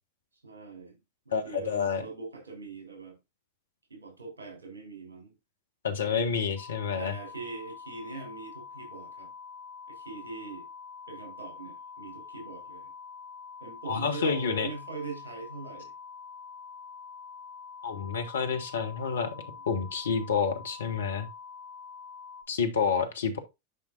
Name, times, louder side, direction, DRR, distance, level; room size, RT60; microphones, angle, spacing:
voice 1, 0.4-1.0 1.3-3.2 3.9-5.3 6.9-9.3 9.9-10.7 11.1-12.9 13.6-15.9 19.3-19.7, right 4 dB, 70° right, 3.6 m, -42 dB
voice 2, 1.3-2.0 5.8-7.1 13.9-14.7 17.8-19.3 19.7-21.3 22.5-23.4, left 6 dB, 65° left, 1.5 m, -29 dB
sound 1, 6.6-22.4, left 5 dB, 50° left, 3.0 m, -46 dB
9.9 x 5.3 x 2.6 m
figure-of-eight pair, 90°, 0 cm